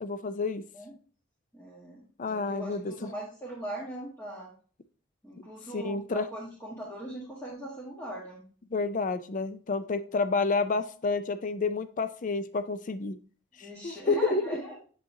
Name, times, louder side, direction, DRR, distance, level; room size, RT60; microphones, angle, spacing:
voice 1, 0.0-0.6 2.2-3.1 5.7-6.3 8.7-13.2 13.6-14.4, left 4 dB, 40° left, 12 dB, 0.5 m, -29 dB
voice 2, 1.5-4.5 5.2-8.4 13.6-14.8, right 1 dB, 15° left, -6 dB, 1.5 m, -40 dB
7.9 x 5.4 x 2.7 m, 0.41 s
head